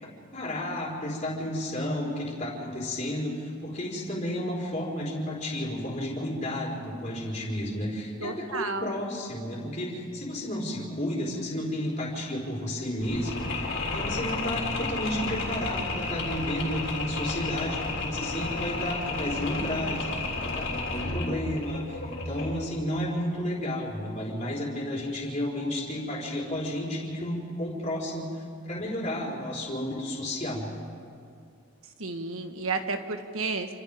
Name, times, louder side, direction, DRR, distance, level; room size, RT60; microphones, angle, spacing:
voice 1, 0.0-30.7, left 1 dB, 30° left, -4 dB, 4.6 m, -32 dB
voice 2, 8.2-8.9 32.0-33.7, right 3 dB, 75° right, 6 dB, 1.5 m, -32 dB
Mechanisms, 13.0-22.8, left 3 dB, 55° left, 3.7 m, -32 dB
28.5 x 26.5 x 3.7 m, 2.3 s
head